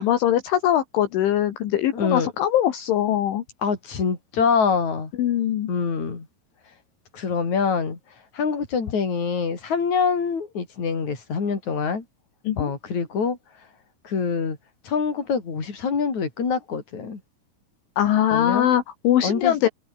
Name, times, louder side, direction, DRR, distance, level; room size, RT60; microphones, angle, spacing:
voice 1, 0.0-3.4 5.2-5.7 12.5-12.7 18.0-19.7, left 11 dB, 70° left, 4.3 m, -21 dB
voice 2, 1.9-2.3 3.6-5.1 5.7-6.3 7.1-8.0 8.3-12.0 12.6-13.4 14.0-14.6 14.8-17.2 18.3-18.7 19.2-19.7, left 5 dB, 35° left, 5.9 m, -25 dB
omnidirectional pair, 6.0 m